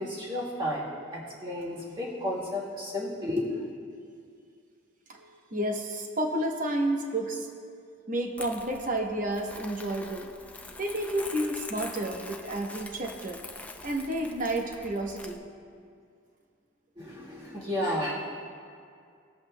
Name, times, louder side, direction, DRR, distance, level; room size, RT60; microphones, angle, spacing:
voice 1, 0.0-3.6 17.0-18.1, left 1 dB, 25° right, -6 dB, 1.8 m, -32 dB
voice 2, 5.1-7.5 8.1-10.3 10.8-13.4 13.8-15.4, right 1 dB, 40° right, 2 dB, 0.9 m, -31 dB
Crumpling crinkling, 8.4-15.4, left 2 dB, 5° left, 0.3 m, -44 dB
20.0 x 7.9 x 2.2 m, 2.3 s
head